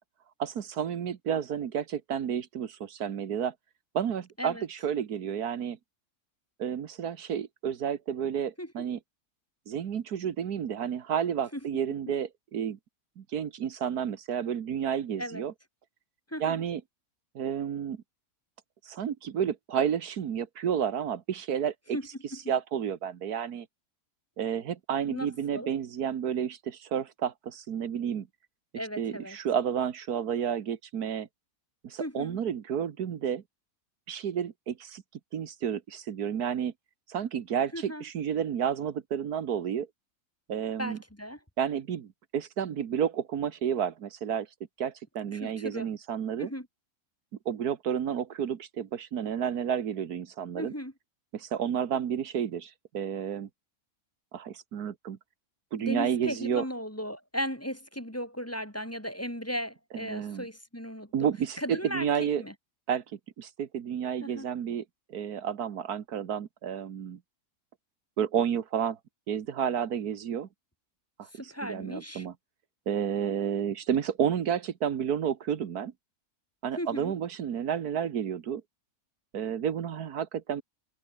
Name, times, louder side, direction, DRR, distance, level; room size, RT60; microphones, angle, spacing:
voice 1, 0.4-3.5 3.9-5.8 6.6-9.0 9.7-12.8 13.2-15.5 16.4-16.8 17.4-18.0 18.8-22.0 22.5-23.7 24.4-28.3 28.7-31.3 31.8-33.4 34.1-35.0 35.3-36.7 37.1-39.9 40.5-41.0 41.6-44.5 44.8-46.5 47.5-50.7 51.3-53.5 54.3-55.2 55.7-56.7 59.9-60.5 61.1-62.4 62.9-63.0 63.4-64.8 65.1-67.2 68.2-69.0 69.3-70.5 71.2-72.3 72.9-75.9 76.6-78.6 79.3-80.6, right 8 dB, 80° right, 1.7 m, -31 dB
voice 2, 16.3-16.6 21.9-22.4 25.1-25.7 28.8-29.4 32.0-32.4 37.7-38.0 40.8-41.4 45.3-45.9 46.4-46.7 50.5-50.9 55.8-61.3 61.6-62.5 64.2-64.5 71.3-72.3 76.8-77.1, equal, 10° left, 3.4 m, -36 dB
omnidirectional pair, 1.6 m